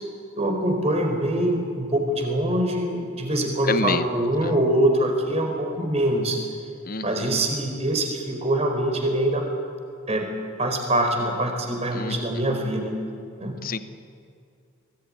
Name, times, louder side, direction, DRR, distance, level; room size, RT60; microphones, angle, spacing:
voice 1, 0.3-6.4 7.0-9.4 10.1-10.2 10.6-12.9 13.4-13.5, right 1 dB, 30° right, 3 dB, 4.5 m, -24 dB
voice 2, 3.7-4.0 6.9-7.3 11.9-12.1 13.6-13.8, left 4 dB, 45° left, 12 dB, 0.9 m, -27 dB
24.0 x 19.0 x 9.9 m, 2.4 s
head